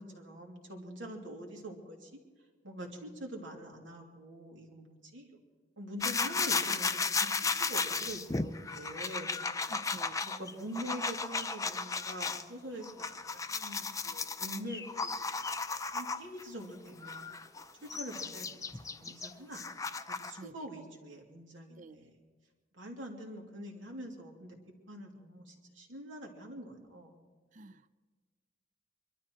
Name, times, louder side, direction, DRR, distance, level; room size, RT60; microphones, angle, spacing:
voice 1, 0.0-2.1 2.6-5.4 5.8-9.6 10.2-15.3 15.7-17.3 17.8-19.7 20.2-22.2 22.7-24.6 24.9-27.1, right 1 dB, 90° right, 0 dB, 2.8 m, -45 dB
sound 1, 6.0-12.4 12.8-16.4 17.0-20.4, left 4 dB, 20° left, 0.5 m, -35 dB
voice 2, 9.7-10.3 20.4-20.5 21.8-22.0 27.5-28.0, right 3 dB, 45° right, 15 dB, 0.6 m, -49 dB
23.5 x 12.5 x 4.6 m, 1.4 s
head